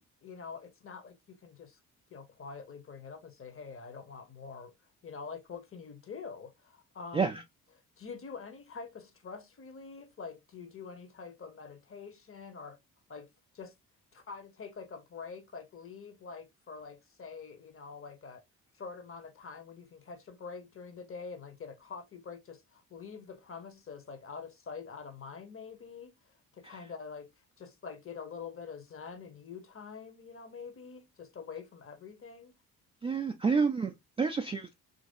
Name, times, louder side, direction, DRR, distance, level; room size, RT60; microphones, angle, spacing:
voice 1, 0.2-1.8 2.1-7.4 8.0-12.8 13.1-13.3 13.5-13.7 14.1-18.4 18.7-32.6, left 5 dB, 30° left, 0.8 m, -46 dB
voice 2, 33.0-34.7, right 5 dB, 15° right, 0.3 m, -29 dB
3.0 x 2.6 x 2.6 m
hypercardioid pair, 45°, 44 cm